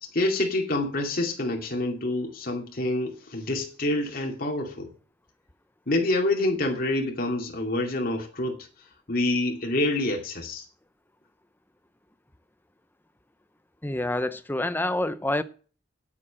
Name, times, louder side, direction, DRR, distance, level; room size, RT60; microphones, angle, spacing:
voice 1, 0.0-4.9 5.9-8.6 9.1-10.6, left 2 dB, 50° left, 2.4 m, -27 dB
voice 2, 13.8-15.4, left 1 dB, 10° left, 0.6 m, -27 dB
9.0 x 8.5 x 7.4 m
head